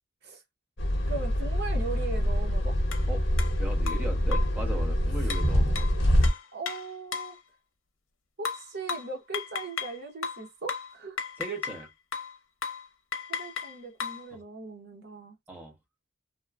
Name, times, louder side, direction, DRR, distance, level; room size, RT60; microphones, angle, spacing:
sound 1, 0.8-6.3, equal, 60° left, 0.9 m, -25 dB
voice 1, 1.1-2.8 6.5-7.4 8.4-11.2 13.4-15.4, right 3 dB, 55° right, 0.8 m, -39 dB
sound 2, 2.9-3.0 3.4-3.5 3.9-4.6 5.3-7.4 8.5-10.0 10.2-11.8 12.1-12.4 12.6-12.9 13.1-14.3, left 6 dB, 90° left, 0.7 m, -35 dB
voice 2, 3.6-5.9 11.4-11.9 14.3-14.4 15.5-15.7, right 2 dB, 10° right, 0.9 m, -38 dB
2.9 x 2.1 x 2.3 m
head